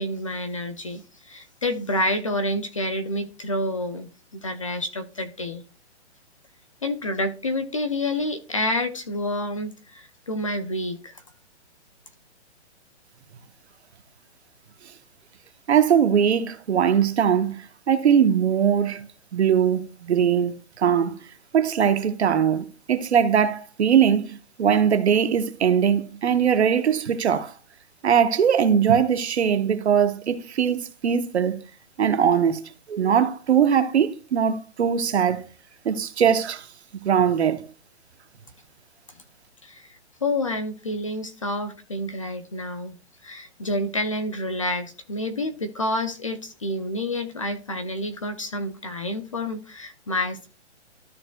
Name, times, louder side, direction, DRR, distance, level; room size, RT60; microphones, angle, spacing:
voice 1, 0.0-4.1 4.4-5.6 6.8-11.1 39.6-43.0 43.2-50.5, left 1 dB, 30° left, 0.5 m, -28 dB
voice 2, 15.7-21.2 21.5-27.5 28.0-31.6 32.0-32.6 32.9-35.5 35.8-36.7 37.0-37.7, right 8 dB, 70° right, 0.9 m, -21 dB
13.0 x 6.7 x 2.3 m
hypercardioid pair, 175°, 35 cm